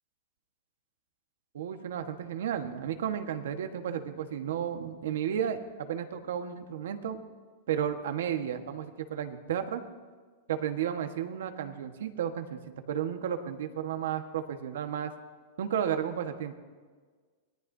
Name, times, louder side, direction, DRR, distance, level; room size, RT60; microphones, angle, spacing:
voice 1, 1.5-7.2 7.7-9.8 10.5-12.6 12.9-15.1 15.6-16.5, right 9 dB, 75° right, 6 dB, 1.4 m, -33 dB
25.0 x 19.5 x 2.8 m, 1.5 s
supercardioid pair, 175°, 0 cm